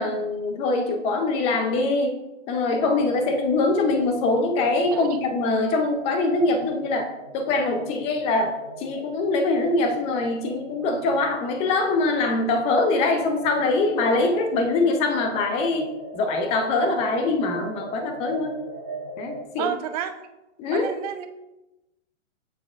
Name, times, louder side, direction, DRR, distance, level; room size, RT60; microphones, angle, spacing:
voice 1, 0.0-2.2 2.5-18.6 19.2-19.7 20.6-20.9, left 3 dB, 15° left, 5 dB, 0.5 m, -23 dB
sound 1, 2.8-19.4, right 2 dB, 45° left, 1.6 m, -40 dB
voice 2, 19.6-20.1 20.7-21.3, right 9 dB, 30° right, 8 dB, 0.5 m, -30 dB
7.0 x 6.5 x 2.4 m, 0.96 s
hypercardioid pair, 135°, 39 cm